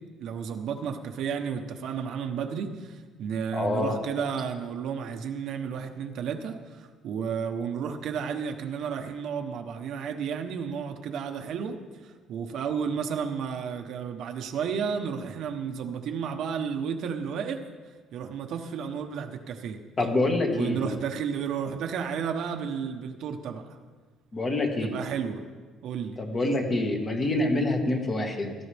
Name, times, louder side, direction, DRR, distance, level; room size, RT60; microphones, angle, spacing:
voice 1, 0.2-11.8 12.0-17.6 18.1-19.8 20.5-23.8 24.8-25.4 25.8-26.2, right 7 dB, 60° right, 4 dB, 1.1 m, -32 dB
voice 2, 3.5-4.0 20.0-20.9 24.3-24.9 26.2-28.5, left 2 dB, 30° left, 2 dB, 1.8 m, -26 dB
17.0 x 13.0 x 3.5 m, 1.4 s
cardioid pair, 140°, 0 cm